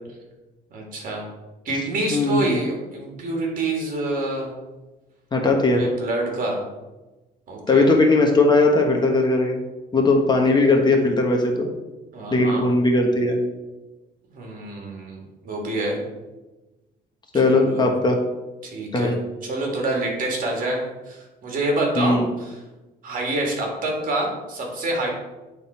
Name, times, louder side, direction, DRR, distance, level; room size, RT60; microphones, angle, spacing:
voice 1, 0.7-1.3 1.6-4.5 5.8-6.6 7.5-7.9 12.1-12.7 14.3-16.0 17.3-17.9 18.6-19.1 19.4-22.5 23.0-25.1, right 2 dB, 55° right, 0 dB, 2.2 m, -27 dB
voice 2, 2.1-2.6 5.3-5.8 7.7-9.6 9.9-11.7 12.3-13.4 17.3-18.2 18.9-19.2 22.0-22.2, left 2 dB, 25° left, 2 dB, 1.2 m, -18 dB
9.1 x 3.9 x 4.3 m, 1.1 s
cardioid pair, 110°, 17 cm